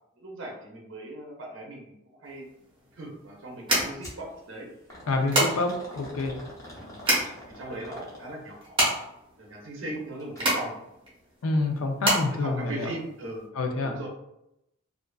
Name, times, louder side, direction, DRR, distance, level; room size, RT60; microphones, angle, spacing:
voice 1, 0.2-1.9 2.2-2.4 2.9-4.7 6.7-7.0 7.5-8.8 9.4-11.0 12.0-13.5 13.8-14.1, right 1 dB, 60° right, -1 dB, 0.6 m, -39 dB
sound 1, 2.3-13.4, right 1 dB, 25° right, 0.8 m, -29 dB
sound 2, 4.0-4.2 4.9-8.6 10.2-10.5 10.9-11.0 11.8-11.9, equal, 15° left, 0.6 m, -45 dB
voice 2, 5.1-6.3 11.4-12.9 13.6-14.0, left 2 dB, 75° left, 4 dB, 0.4 m, -27 dB
2.4 x 2.3 x 2.2 m, 0.83 s
head